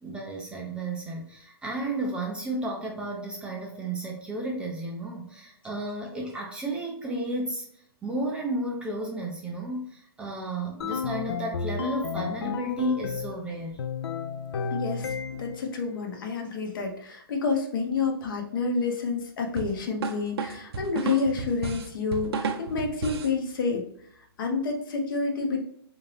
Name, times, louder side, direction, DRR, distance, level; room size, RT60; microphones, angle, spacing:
voice 1, 0.0-13.8, right 1 dB, 10° right, -1 dB, 0.4 m, -33 dB
sound 1, 10.8-13.4 13.8-15.7, left 6 dB, 75° left, 0.4 m, -32 dB
voice 2, 14.7-23.9 24.4-25.7, left 4 dB, 55° left, 3 dB, 0.9 m, -29 dB
sound 2, 19.6-23.4, right 4 dB, 70° right, 0.6 m, -32 dB
3.6 x 2.7 x 3.3 m, 0.66 s
hypercardioid pair, 145°, 13 cm